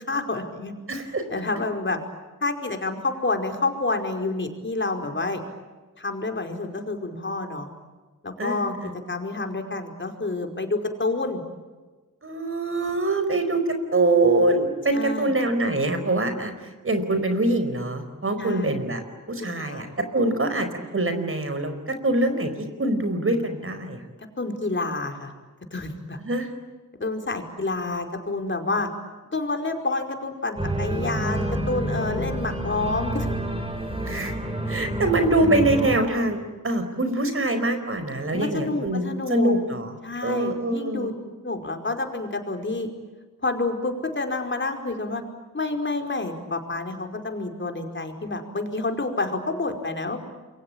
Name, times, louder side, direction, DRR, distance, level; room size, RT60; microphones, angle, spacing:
voice 1, 0.0-0.7 1.3-2.0 2.4-5.5 6.0-7.7 8.2-8.8 9.1-11.4 14.9-15.3 18.4-18.7 19.4-20.0 24.4-25.3 25.7-26.2 27.0-28.9 29.3-33.3 38.3-39.6 40.0-41.1 41.4-42.9 43.4-45.2 45.5-50.2, left 3 dB, 35° left, 4 dB, 5.0 m, -28 dB
voice 2, 0.9-1.2 8.4-8.7 12.2-13.6 13.9-16.5 16.8-19.0 19.3-19.9 20.1-20.7 20.9-22.5 22.8-24.0 26.2-26.5 34.0-34.3 34.7-36.4 36.6-39.9 40.2-41.1, right 2 dB, 40° right, 8 dB, 4.8 m, -24 dB
Organ, 30.5-36.0, right 1 dB, 15° right, 5.7 m, -28 dB
28.0 x 23.5 x 8.9 m, 1.3 s
cardioid pair, 75°, 32 cm